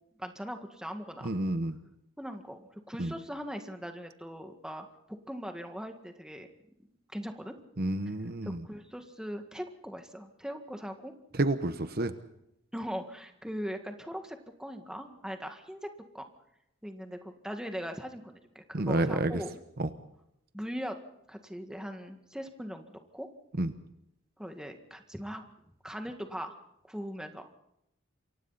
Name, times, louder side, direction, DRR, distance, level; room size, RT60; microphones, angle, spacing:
voice 1, 0.2-1.3 2.2-6.5 7.1-7.5 8.1-8.2 8.4-11.1 12.7-15.9 16.1-16.3 16.8-19.5 20.5-21.0 21.3-23.3 24.4-25.4 25.8-26.6 26.9-27.5, equal, 5° right, 5 dB, 1.9 m, -40 dB
voice 2, 1.2-1.8 3.0-3.1 7.8-8.6 11.4-12.1 18.7-19.4 19.8-19.9 23.6-23.7, right 2 dB, 50° right, 10 dB, 1.1 m, -29 dB
28.0 x 24.0 x 4.2 m, 0.80 s
head